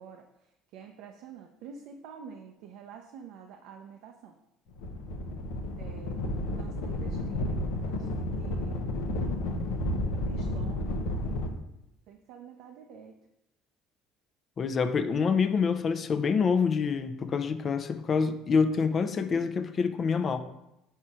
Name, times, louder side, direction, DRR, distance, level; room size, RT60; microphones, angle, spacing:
voice 1, 0.0-4.4 5.8-6.2 6.5-8.9 10.3-11.0 12.1-13.2, right 7 dB, 70° right, 3 dB, 0.5 m, -48 dB
sound 1, 4.8-11.5, left 1 dB, 80° left, 0.7 m, -32 dB
voice 2, 14.6-20.4, left 5 dB, 40° left, 10 dB, 0.6 m, -26 dB
5.6 x 4.4 x 4.8 m, 0.89 s
hypercardioid pair, 70°, 0 cm